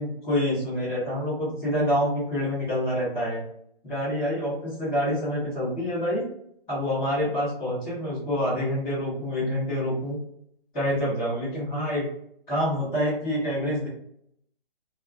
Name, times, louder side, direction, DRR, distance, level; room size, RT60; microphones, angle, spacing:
voice 1, 0.0-3.4 3.8-6.2 6.7-10.2 10.7-12.1 12.5-13.9, equal, 5° left, -18 dB, 0.6 m, -27 dB
2.2 x 2.1 x 3.2 m, 0.72 s
hypercardioid pair, 170°, 31 cm